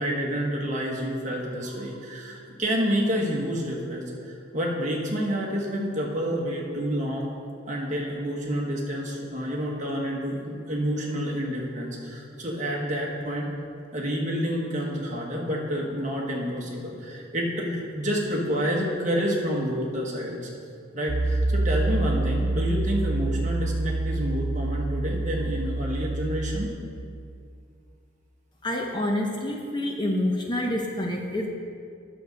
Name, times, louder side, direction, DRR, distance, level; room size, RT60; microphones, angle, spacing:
voice 1, 0.0-7.3 7.7-13.5 13.9-20.5 20.9-26.7, equal, 35° right, -2 dB, 1.3 m, -29 dB
Piano, 21.1-26.7, right 2 dB, 60° right, 1.0 m, -27 dB
voice 2, 28.6-31.5, left 1 dB, 20° left, 1 dB, 0.6 m, -27 dB
9.1 x 6.7 x 5.2 m, 2.4 s
head